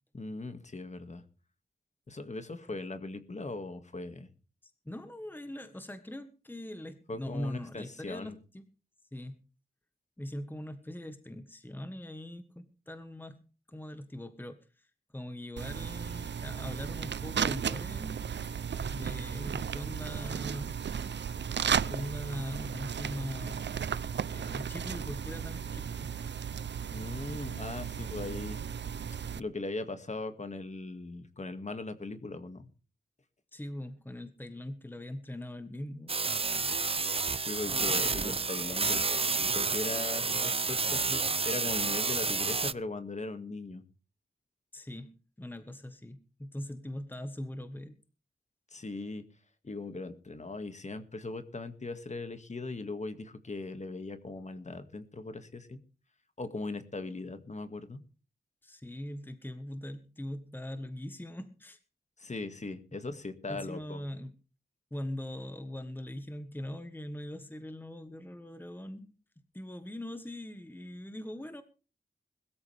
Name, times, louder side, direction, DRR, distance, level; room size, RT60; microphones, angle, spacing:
voice 1, 0.1-1.2 2.1-4.3 7.1-8.4 26.9-28.6 29.4-32.7 37.4-43.8 48.7-49.2 49.6-55.8 56.4-58.0 62.2-64.0, left 3 dB, 40° left, 8 dB, 2.1 m, -39 dB
voice 2, 4.6-8.6 9.1-9.4 10.2-13.4 13.7-14.9 15.1-18.3 18.9-20.8 21.9-23.6 24.2-26.1 33.5-36.2 38.0-38.1 44.7-48.0 58.6-61.8 63.5-64.3 64.9-71.6, left 1 dB, 10° left, 9 dB, 1.4 m, -41 dB
sound 1, 15.6-29.4, right 7 dB, 90° right, 0.7 m, -35 dB
sound 2, 36.1-42.7, right 4 dB, 35° right, 0.6 m, -30 dB
21.0 x 14.0 x 3.5 m, 0.36 s
wide cardioid pair, 120°, 18 cm